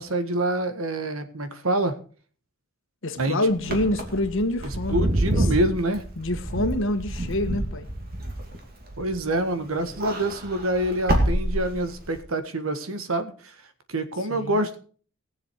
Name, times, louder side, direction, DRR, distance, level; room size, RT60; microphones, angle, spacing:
voice 1, 0.0-2.0 3.2-3.5 4.9-6.0 9.0-13.5 13.9-14.8, right 1 dB, 75° right, 10 dB, 1.6 m, -26 dB
voice 2, 3.0-5.1 5.3-5.5 6.2-7.9 14.3-14.6, left 1 dB, 65° left, 8 dB, 1.5 m, -26 dB
Wind / Car, 3.6-9.4 9.7-12.2, right 1 dB, 45° right, 2.6 m, -27 dB
19.0 x 7.5 x 4.7 m, 0.42 s
head